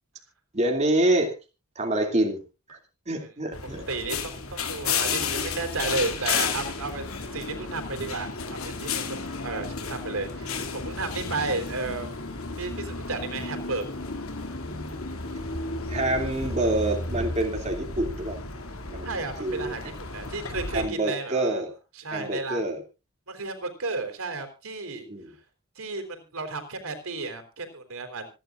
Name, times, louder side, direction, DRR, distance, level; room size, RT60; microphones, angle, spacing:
voice 1, 0.5-1.3 1.8-2.4 2.7-2.8 3.1-3.9 15.9-18.4 18.9-19.8 20.7-21.7 22.1-22.8 25.1-25.3, right 1 dB, 30° right, 2 dB, 2.7 m, -26 dB
sound 1, 3.5-20.9, left 4 dB, 85° left, 2.6 m, -33 dB
voice 2, 3.9-12.1 12.6-13.9 19.0-21.6 21.9-22.6 23.3-25.1 25.8-28.3, right 3 dB, 80° right, 7 dB, 4.0 m, -33 dB
26.5 x 11.0 x 2.5 m, 0.31 s
head